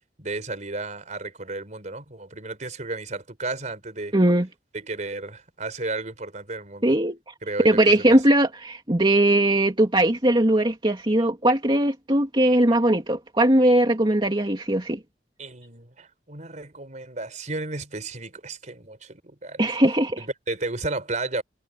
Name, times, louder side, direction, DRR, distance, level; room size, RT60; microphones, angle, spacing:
voice 1, 0.2-4.1 4.7-6.9 7.4-8.2 15.4-19.7 20.2-21.4, right 2 dB, 45° right, 4.1 m, -33 dB
voice 2, 4.1-4.5 6.8-7.3 7.6-15.0 19.6-20.2, right 1 dB, 30° right, 2.6 m, -20 dB
head